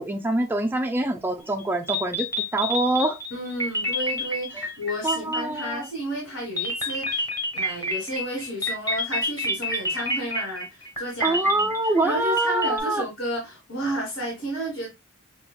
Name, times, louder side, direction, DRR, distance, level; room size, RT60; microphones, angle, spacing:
voice 1, 0.0-3.2 4.5-4.7 5.0-5.9 11.2-13.0, right 1 dB, 10° right, 0.4 m, -25 dB
sound 1, 1.6-1.7 1.9-5.9 6.6-12.8, equal, 20° left, 1.1 m, -28 dB
voice 2, 3.3-11.7 12.0-14.9, equal, 75° left, 1.7 m, -32 dB
5.7 x 2.3 x 2.2 m
head